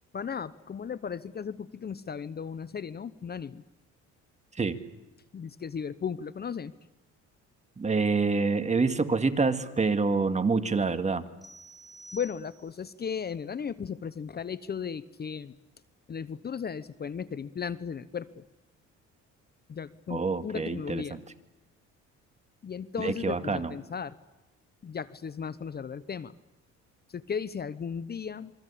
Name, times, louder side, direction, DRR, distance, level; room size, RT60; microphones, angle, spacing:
voice 1, 0.1-3.6 5.3-6.7 12.1-15.5 16.1-18.4 19.7-21.2 22.6-24.1 24.8-26.3 27.1-28.5, left 7 dB, 35° left, 16 dB, 0.9 m, -36 dB
voice 2, 7.8-11.3 20.1-21.2 23.0-23.7, right 4 dB, 25° right, 9 dB, 2.0 m, -27 dB
sound 1, 11.4-12.9, right 1 dB, ahead, 5.4 m, -50 dB
27.5 x 23.5 x 8.6 m, 0.97 s
supercardioid pair, 85°, 30 cm